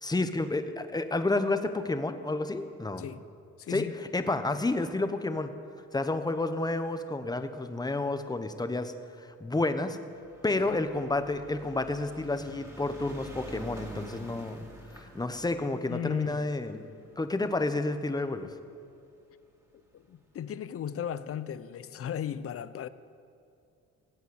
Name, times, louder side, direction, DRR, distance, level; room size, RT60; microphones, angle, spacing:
voice 1, 0.0-3.0 3.7-3.8 4.1-5.5 5.9-8.9 9.4-10.0 10.4-14.6 14.9-16.9 17.2-18.5, left 2 dB, 15° left, 1.0 m, -30 dB
voice 2, 3.6-4.0 10.6-10.8 15.8-16.5 19.9-22.9, left 9 dB, 50° left, 0.6 m, -36 dB
sound 1, 10.2-18.7 19.5-19.6 19.8-19.9 20.1-20.2, right 1 dB, 10° right, 2.7 m, -48 dB
17.0 x 8.2 x 8.0 m
cardioid pair, 90°, 30 cm